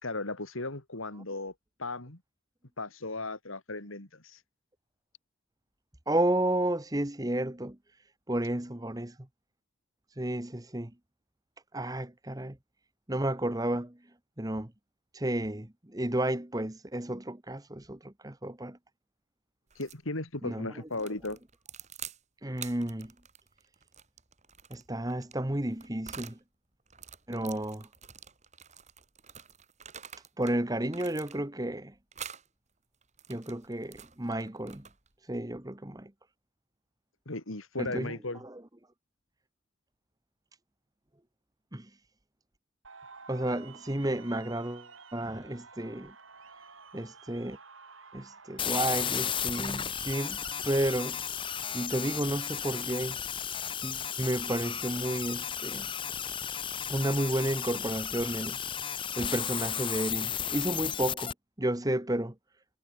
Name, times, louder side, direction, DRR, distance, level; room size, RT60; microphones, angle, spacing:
voice 1, 0.0-1.5 1.8-2.2 2.8-4.4 19.8-21.4 37.3-38.4, left 2 dB, 85° left, 3.5 m, -36 dB
voice 2, 6.1-9.2 10.1-10.9 11.7-12.6 13.1-14.7 15.1-18.8 20.4-20.7 22.4-23.1 24.7-26.4 27.3-27.9 30.4-32.0 33.3-34.9 35.2-36.1 37.8-38.1 38.4-38.6 41.7-42.0 43.3-46.1 46.5-46.7 46.9-47.6 48.1-50.4 50.6-51.2 51.7-53.2 53.8-55.9 56.9-58.6 59.2-62.3, right 1 dB, 20° right, 1.1 m, -32 dB
sound 1, 19.7-20.0 20.9-22.2 22.5-26.4 26.9-30.6 30.9-31.6 32.1-32.5 33.0-35.1, right 8 dB, 35° right, 5.8 m, -47 dB
sound 2, 42.8-60.6, right 4 dB, 80° right, 5.7 m, -55 dB
sound 3, 48.6-61.3, left 8 dB, 25° left, 0.8 m, -34 dB
head